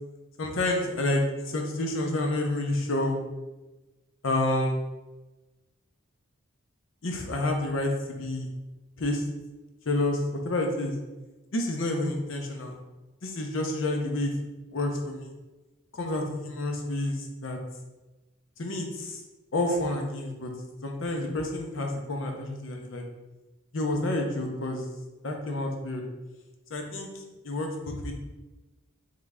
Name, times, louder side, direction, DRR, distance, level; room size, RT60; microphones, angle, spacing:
voice 1, 0.4-3.2 4.2-4.8 7.0-8.5 9.0-9.2 9.9-10.9 11.5-12.8 13.2-14.3 14.7-15.3 15.9-17.6 18.6-19.2 19.5-20.5 20.8-23.0 23.7-24.8 25.2-26.0 26.7-28.1, left 1 dB, 65° left, 2 dB, 0.7 m, -29 dB
3.7 x 3.2 x 3.6 m, 1.1 s
head